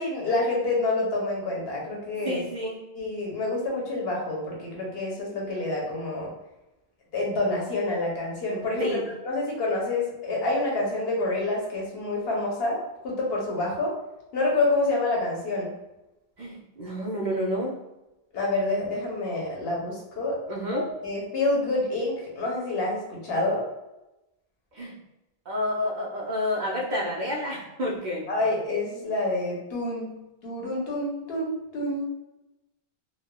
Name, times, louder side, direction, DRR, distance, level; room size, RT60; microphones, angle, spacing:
voice 1, 0.0-2.4 2.9-6.3 7.1-9.0 9.2-12.8 13.0-13.9 14.3-15.7 18.3-20.4 20.7-23.6 28.3-30.2 30.4-32.1, left 2 dB, 75° left, -3 dB, 1.0 m, -27 dB
voice 2, 2.2-2.8 8.8-9.0 16.4-17.7 20.5-20.8 24.7-24.9 25.5-28.3, left 1 dB, 55° right, -3 dB, 0.6 m, -29 dB
3.1 x 2.1 x 2.2 m, 0.95 s
omnidirectional pair, 1.0 m